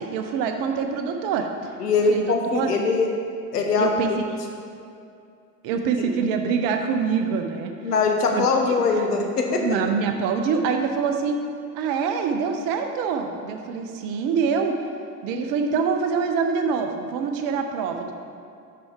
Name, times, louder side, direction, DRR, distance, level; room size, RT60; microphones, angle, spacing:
voice 1, 0.0-1.7 2.1-2.7 3.8-4.1 5.6-7.7 8.3-9.1 9.6-11.4 11.7-14.8 15.2-18.1, right 6 dB, 45° right, 5 dB, 0.7 m, -25 dB
voice 2, 1.8-3.1 3.5-3.9 6.0-6.1 7.8-9.6, left 4 dB, 80° left, 2 dB, 0.9 m, -22 dB
6.0 x 5.7 x 3.6 m, 2.5 s
figure-of-eight pair, 70°, 47 cm